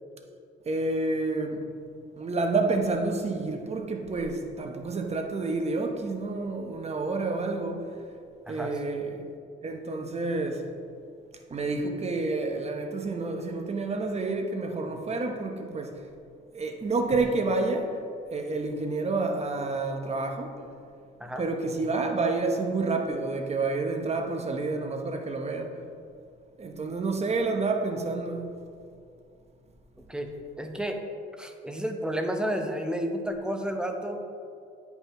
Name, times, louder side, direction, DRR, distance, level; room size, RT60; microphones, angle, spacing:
voice 1, 0.7-1.6 2.2-7.9 8.5-9.2 9.6-10.6 11.5-16.0 16.5-18.0 18.3-20.5 21.4-25.8 26.6-28.5, right 3 dB, 30° right, 0.9 m, -29 dB
voice 2, 8.5-8.9 21.2-21.5 30.0-30.3 30.6-31.0 31.3-34.3, equal, 5° right, 0.8 m, -31 dB
9.3 x 5.7 x 3.0 m
cardioid pair, 90°, 20 cm